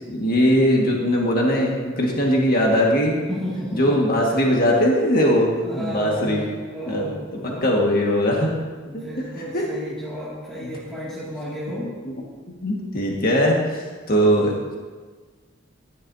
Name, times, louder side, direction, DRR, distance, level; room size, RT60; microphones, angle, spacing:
voice 1, 0.1-3.1 3.7-6.4 6.9-7.1 7.4-8.5 8.9-9.2 9.5-9.7 10.6-10.7 12.6-14.5, equal, 50° left, -2 dB, 1.7 m, -20 dB
voice 2, 3.3-4.0 5.6-7.9 8.8-11.9, equal, 5° left, -11 dB, 2.4 m, -32 dB
15.0 x 11.0 x 2.8 m, 1.4 s
head